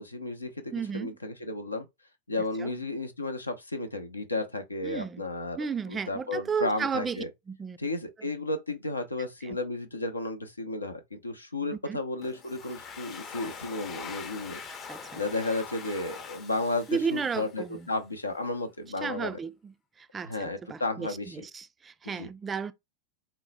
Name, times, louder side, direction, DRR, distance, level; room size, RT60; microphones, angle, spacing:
voice 1, 0.0-1.9 2.3-5.6 5.9-7.3 7.8-14.6 15.1-19.4 20.2-21.4 22.0-22.3, left 2 dB, 80° left, 0.6 m, -33 dB
voice 2, 0.7-1.1 2.6-2.7 4.8-5.2 5.6-7.2 7.5-7.8 9.4-9.6 11.7-12.0 14.7-15.2 16.9-17.9 19.0-19.7 20.0-22.7, right 6 dB, 20° right, 0.3 m, -33 dB
Domestic sounds home sounds, 12.2-17.8, left 6 dB, 30° left, 0.6 m, -43 dB
3.8 x 2.1 x 4.1 m
figure-of-eight pair, 90°, 0 cm